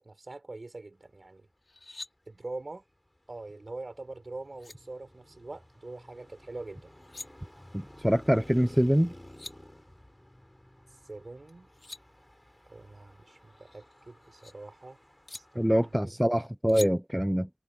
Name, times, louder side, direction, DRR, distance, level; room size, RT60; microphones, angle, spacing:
voice 1, 0.0-1.5 2.3-2.8 3.3-6.9 11.0-11.7 12.7-15.0 15.3-16.2, right 2 dB, 60° right, 6.8 m, -44 dB
sound 1, 1.6-2.1 4.2-4.3 4.6-4.8 6.8-7.3 8.9-9.0 9.2-9.5 11.5-12.0 13.5-14.5 15.3-15.4 16.7-16.9, left 2 dB, 60° left, 5.1 m, -44 dB
Traffic noise roadway noise, 2.3-16.0, left 1 dB, 15° left, 4.5 m, -54 dB
voice 2, 7.7-9.1 15.6-17.5, equal, 10° right, 0.9 m, -25 dB
wide cardioid pair, 50°, 0 cm